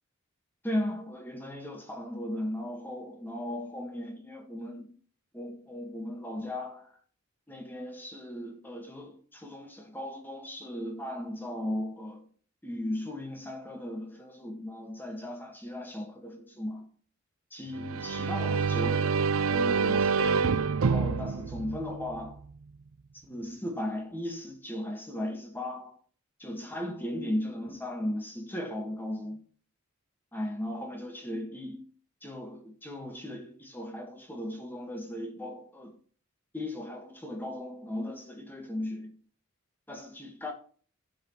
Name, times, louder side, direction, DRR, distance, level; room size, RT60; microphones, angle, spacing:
voice 1, 0.6-5.0 5.3-6.9 7.5-12.3 12.6-16.9 17.5-22.4 23.3-25.9 26.4-29.5 30.3-31.9 32.2-36.0 36.5-39.2 39.9-40.5, left 1 dB, 10° left, 1.6 m, -37 dB
sound 1, 17.7-22.5, right 5 dB, 80° right, 0.5 m, -27 dB
16.5 x 5.9 x 3.1 m
head